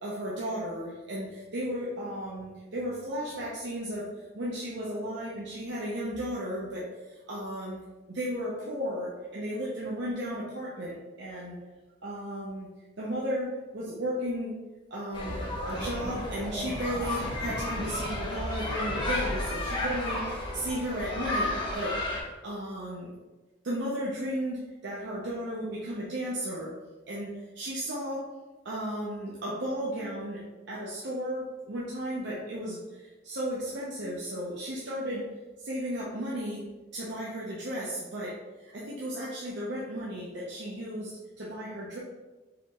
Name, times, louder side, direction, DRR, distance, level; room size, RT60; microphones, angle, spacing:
voice 1, 0.0-4.1 4.3-7.8 8.1-11.6 12.0-12.7 13.0-14.6 14.9-23.1 23.6-26.7 27.1-28.3 28.6-35.3 35.6-36.7 36.9-41.1 41.4-42.0, equal, 65° right, -6 dB, 0.8 m, -34 dB
sound 1, 15.1-22.2, left 1 dB, 25° left, 0.9 m, -32 dB
4.8 x 3.5 x 3.1 m, 1.2 s
head